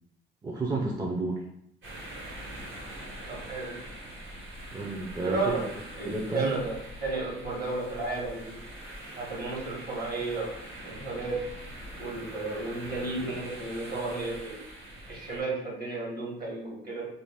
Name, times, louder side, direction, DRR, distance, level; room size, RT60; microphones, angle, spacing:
voice 1, 0.4-1.5 4.7-5.6 6.0-6.6, right 2 dB, 20° right, -1 dB, 0.4 m, -31 dB
sound 1, 1.8-15.4, right 1 dB, 75° right, 1.3 m, -43 dB
voice 2, 3.3-3.8 5.2-5.6 6.0-8.6 9.2-10.5 10.8-11.4 12.0-14.6 15.1-17.0, right 3 dB, 50° right, -2 dB, 1.1 m, -33 dB
2.5 x 2.1 x 3.3 m, 0.77 s
cardioid pair, 90°, 20 cm